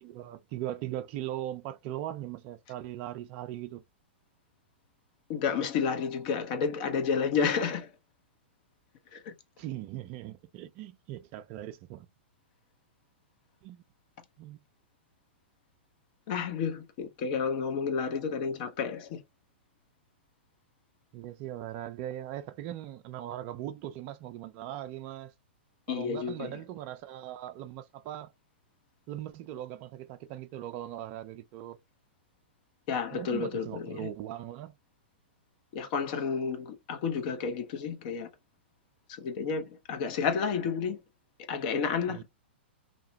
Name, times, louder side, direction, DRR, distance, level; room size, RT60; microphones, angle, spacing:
voice 1, 0.0-3.8 9.6-12.1 13.6-13.8 14.4-14.6 21.1-25.3 25.9-28.3 29.1-31.8 33.1-34.8 42.1-42.2, right 12 dB, 40° right, 0.3 m, -39 dB
voice 2, 5.3-7.9 9.1-9.3 16.3-19.2 25.9-26.5 32.9-34.1 35.7-38.3 39.2-41.0 41.5-42.2, left 6 dB, 50° left, 0.8 m, -31 dB
2.8 x 2.1 x 2.7 m
hypercardioid pair, 115°, 6 cm